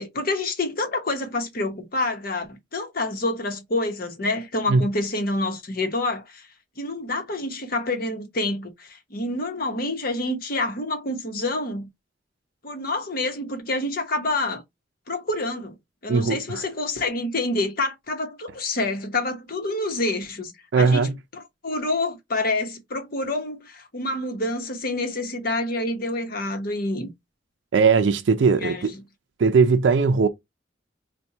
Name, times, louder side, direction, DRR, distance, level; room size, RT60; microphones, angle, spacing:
voice 1, 0.0-6.5 6.8-11.9 12.6-14.6 15.1-15.7 16.0-27.1 28.6-28.9, left 2 dB, 55° left, 1.0 m, -27 dB
voice 2, 16.1-16.6 20.7-21.1 27.7-28.9 29.4-30.3, right 5 dB, 90° right, 0.4 m, -19 dB
4.3 x 2.2 x 2.7 m
head